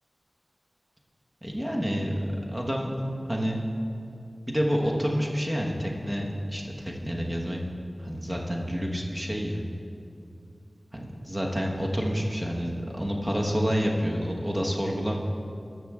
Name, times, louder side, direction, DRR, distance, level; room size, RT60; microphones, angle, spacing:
voice 1, 1.4-2.2 2.5-3.0 3.3-3.6 4.5-7.6 8.0-9.6 10.9-15.2, equal, 20° right, -1 dB, 1.2 m, -28 dB
13.5 x 6.2 x 3.6 m, 2.5 s
wide cardioid pair, 60°, 0 cm